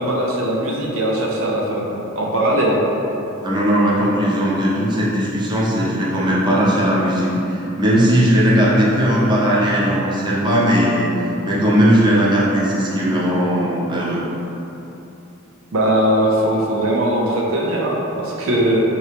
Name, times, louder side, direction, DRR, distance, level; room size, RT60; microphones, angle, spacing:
voice 1, 0.0-1.9 2.1-2.8 15.7-18.8, right 1 dB, 80° right, -2 dB, 0.7 m, -19 dB
voice 2, 3.4-11.1 11.5-14.2, equal, 20° right, -6 dB, 0.7 m, -17 dB
4.2 x 2.8 x 3.4 m, 3.0 s
head